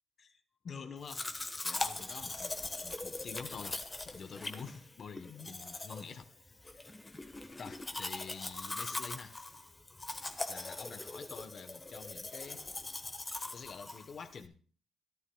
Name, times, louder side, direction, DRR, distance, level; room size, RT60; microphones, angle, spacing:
voice 1, 0.2-1.3 1.6-3.8 4.0-6.9 7.6-9.4 10.5-12.6 13.5-14.6, left 5 dB, 50° left, 1.0 m, -47 dB
Domestic sounds home sounds, 1.0-14.4, left 2 dB, 20° left, 1.3 m, -41 dB
14.5 x 13.0 x 2.3 m
cardioid pair, 90°, 0 cm